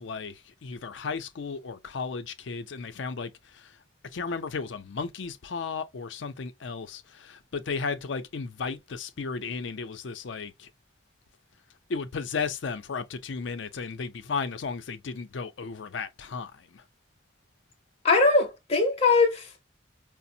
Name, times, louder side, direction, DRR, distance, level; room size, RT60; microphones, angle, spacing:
voice 1, 0.0-3.8 4.1-10.7 11.9-16.8, left 5 dB, 75° left, 0.5 m, -34 dB
voice 2, 18.0-19.6, left 3 dB, 30° left, 0.6 m, -21 dB
4.9 x 2.0 x 2.6 m
head